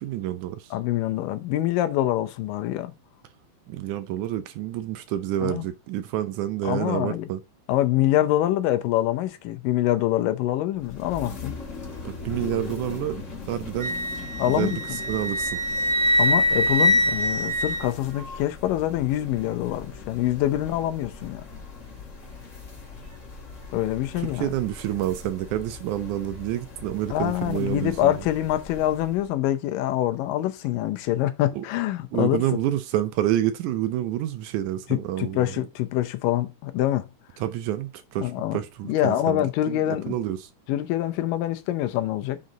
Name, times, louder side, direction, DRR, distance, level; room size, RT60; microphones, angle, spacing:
voice 1, 0.0-0.7 3.7-7.4 12.0-14.0 14.5-15.6 24.2-28.1 31.6-31.7 32.1-35.6 37.4-40.5, right 12 dB, 80° right, 1.9 m, -28 dB
voice 2, 0.7-2.9 5.4-5.7 6.6-7.3 7.7-11.5 14.4-14.8 16.2-21.4 23.7-24.5 27.1-32.4 34.9-37.1 38.2-38.6 38.9-40.2 40.7-42.4, left 13 dB, 85° left, 2.4 m, -25 dB
sound 1, 10.7-29.3, left 4 dB, 35° left, 1.2 m, -40 dB
Wind instrument woodwind instrument, 13.8-18.4, left 1 dB, ahead, 1.8 m, -24 dB
6.3 x 4.1 x 3.8 m
omnidirectional pair, 3.8 m